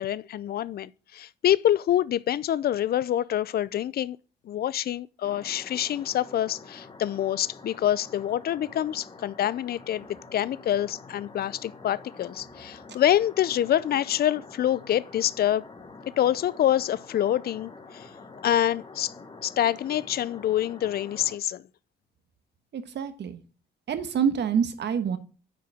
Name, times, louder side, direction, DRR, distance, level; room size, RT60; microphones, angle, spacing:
voice 1, 0.0-4.2 4.4-10.1 10.3-15.6 16.2-18.1 18.4-19.1 19.4-21.6, left 11 dB, 50° left, 0.5 m, -26 dB
sound 1, 5.2-21.4, left 3 dB, 25° left, 1.3 m, -47 dB
voice 2, 22.7-23.4 23.9-25.2, right 7 dB, 60° right, 1.3 m, -26 dB
9.3 x 4.9 x 3.5 m
cardioid pair, 90°, 20 cm